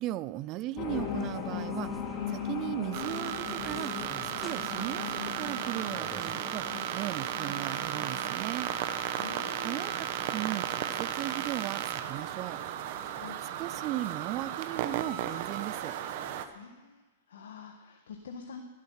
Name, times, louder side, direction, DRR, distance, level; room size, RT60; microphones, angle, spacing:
voice 1, 0.0-1.9 2.3-3.9 4.4-6.7 6.9-8.7 9.6-12.6 13.6-16.0, right 15 dB, 30° right, 17 dB, 0.4 m, -37 dB
sound 1, 0.8-9.6 9.9-10.0, left 7 dB, 30° left, 2.5 m, -39 dB
sound 2, 0.9-16.5, left 1 dB, 5° left, 1.0 m, -53 dB
sound 3, 2.9-16.5, right 10 dB, 50° right, 1.1 m, -35 dB
voice 2, 9.2-9.9 13.0-13.4 16.5-18.6, left 5 dB, 85° left, 4 dB, 1.5 m, -46 dB
15.5 x 11.0 x 5.7 m, 1.2 s
hypercardioid pair, 150°, 0 cm